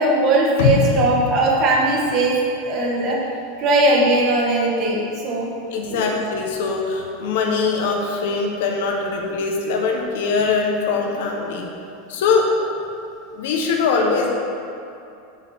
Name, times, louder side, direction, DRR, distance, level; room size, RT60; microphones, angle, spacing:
voice 1, 0.0-2.3 2.6-3.2 3.6-5.5 5.9-6.1, right 2 dB, 30° right, -2 dB, 1.1 m, -19 dB
sound 1, 0.6-2.7 3.1-3.2, left 5 dB, 85° left, 0.5 m, -23 dB
voice 2, 5.7-11.7 12.1-12.5 13.3-14.3, left 4 dB, 65° left, 1 dB, 0.8 m, -22 dB
7.1 x 4.2 x 5.5 m, 2.6 s
supercardioid pair, 175°, 0 cm